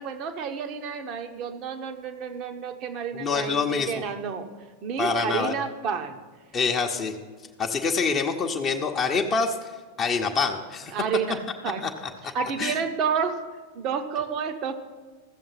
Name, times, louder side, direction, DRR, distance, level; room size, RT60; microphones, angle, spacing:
voice 1, 0.0-4.5 4.8-6.2 10.9-11.9 12.2-13.4 13.7-14.7, right 6 dB, 35° right, 8 dB, 1.1 m, -30 dB
voice 2, 3.2-3.9 5.0-5.5 6.5-7.1 7.6-9.5 10.0-10.9 11.8-11.9 12.6-12.7, left 5 dB, 25° left, 2 dB, 0.9 m, -25 dB
15.0 x 7.1 x 5.8 m, 1.4 s
figure-of-eight pair, 90°, 0 cm